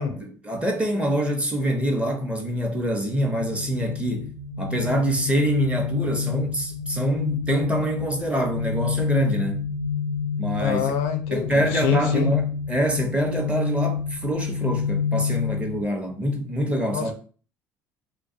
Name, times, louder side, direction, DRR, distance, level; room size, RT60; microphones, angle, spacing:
voice 1, 0.0-4.3 4.6-9.7 10.4-10.9 11.3-17.1, equal, 10° right, 0.7 m, -25 dB
sound 1, 3.1-15.8, left 6 dB, 55° right, 0.7 m, -28 dB
voice 2, 10.6-12.3 16.9-17.1, left 7 dB, 65° left, 0.5 m, -26 dB
2.3 x 2.2 x 2.6 m
hypercardioid pair, 70°, 11 cm